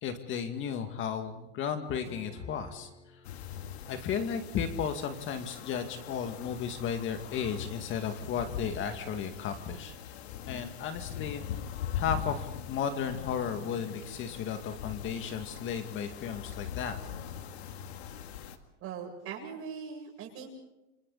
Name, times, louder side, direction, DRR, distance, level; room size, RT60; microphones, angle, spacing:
voice 1, 0.0-2.9 3.9-10.1 10.5-11.4 11.9-17.0, left 7 dB, 40° left, 7 dB, 2.2 m, -34 dB
Acoustic guitar / Strum, 2.0-8.0, left 1 dB, 20° left, 5.8 m, -58 dB
sound 1, 3.2-18.6, left 9 dB, 80° left, 2.1 m, -41 dB
voice 2, 18.8-20.5, right 6 dB, 45° right, 1 dB, 7.8 m, -41 dB
30.0 x 26.5 x 4.2 m, 0.95 s
supercardioid pair, 125°, 32 cm